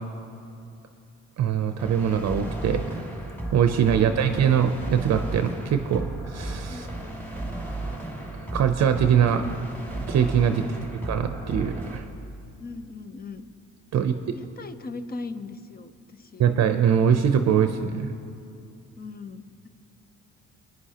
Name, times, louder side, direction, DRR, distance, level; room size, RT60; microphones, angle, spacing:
voice 1, 1.4-3.0 3.5-6.0 6.3-6.9 8.5-9.4 10.1-10.6 11.0-12.0 13.9-14.3 16.4-18.1, right 8 dB, 60° right, 7 dB, 0.6 m, -22 dB
sound 1, 1.8-12.0, right 2 dB, 5° left, 1.9 m, -34 dB
voice 2, 6.7-7.7 10.9-11.0 12.6-13.5 14.3-16.5 19.0-19.7, left 3 dB, 30° left, 11 dB, 0.7 m, -40 dB
23.0 x 9.7 x 2.9 m, 2.5 s
cardioid pair, 90°, 30 cm